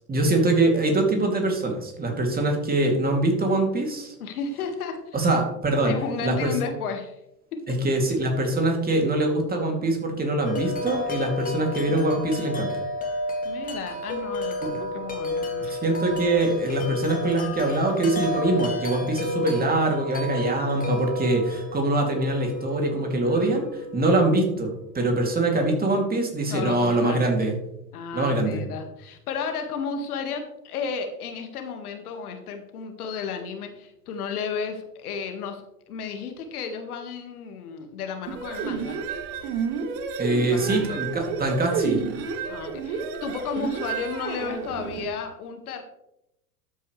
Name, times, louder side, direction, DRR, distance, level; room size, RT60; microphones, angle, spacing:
voice 1, 0.1-4.1 5.1-5.9 6.2-6.5 7.7-12.7 14.6-14.7 15.6-27.5 28.1-28.6 40.2-42.0, right 2 dB, 20° right, 2 dB, 2.8 m, -23 dB
voice 2, 4.2-5.2 5.8-7.2 7.5-7.6 13.4-15.8 23.2-23.6 26.5-27.4 27.9-39.0 40.5-41.0 42.5-45.8, left 5 dB, 65° left, 5 dB, 2.0 m, -33 dB
Wind chime, 10.4-24.4, left 2 dB, 15° left, 2.4 m, -32 dB
sound 1, 38.3-45.1, right 5 dB, 50° right, 2.1 m, -30 dB
13.0 x 8.9 x 3.3 m, 0.84 s
figure-of-eight pair, 90°, 48 cm